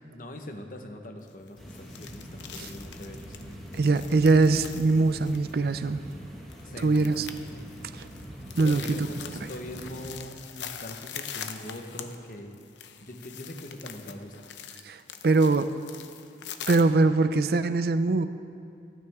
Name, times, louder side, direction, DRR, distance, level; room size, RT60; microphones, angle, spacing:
voice 1, 0.1-4.0 6.6-7.3 8.6-12.6 13.0-14.3, left 1 dB, 50° left, 4 dB, 1.1 m, -42 dB
sound 1, 1.2-16.8, left 8 dB, 80° left, 0.8 m, -43 dB
sound 2, 1.6-10.1, equal, ahead, 1.7 m, -43 dB
voice 2, 3.7-6.0 6.8-7.3 8.0-8.1 8.6-9.1 14.9-15.7 16.7-18.3, right 3 dB, 55° right, 12 dB, 0.4 m, -22 dB
27.0 x 9.5 x 3.6 m, 2.6 s
head